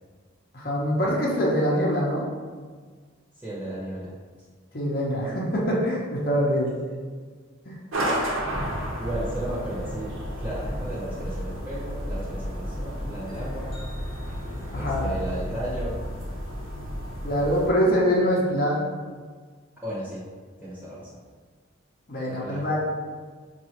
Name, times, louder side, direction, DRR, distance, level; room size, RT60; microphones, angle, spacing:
voice 1, 0.5-2.3 4.7-6.8 7.7-7.8 14.7-15.1 17.2-18.8 22.1-22.8, equal, 45° left, -4 dB, 0.7 m, -24 dB
voice 2, 3.3-4.1 8.0-8.5 9.0-13.7 14.7-16.0 19.8-20.2 20.6-21.2 22.2-22.8, right 1 dB, 10° right, -10 dB, 0.8 m, -35 dB
sound 1, 7.9-17.7, equal, 85° right, 0.9 m, -32 dB
5.1 x 2.4 x 2.9 m, 1.6 s
head